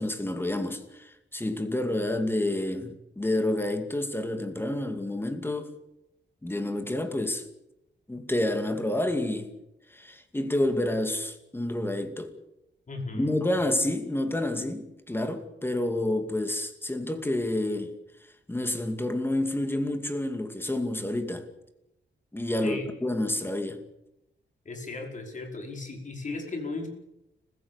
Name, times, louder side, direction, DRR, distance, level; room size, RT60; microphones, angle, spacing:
voice 1, 0.0-5.7 6.4-7.5 8.1-9.5 9.9-12.3 13.1-17.9 18.5-21.5 22.3-23.8, left 1 dB, 10° left, 2.4 m, -29 dB
voice 2, 12.9-13.4 22.6-22.9 24.7-26.9, left 3 dB, 40° left, 5.2 m, -36 dB
29.5 x 15.5 x 7.1 m
wide cardioid pair, 175°, 19 cm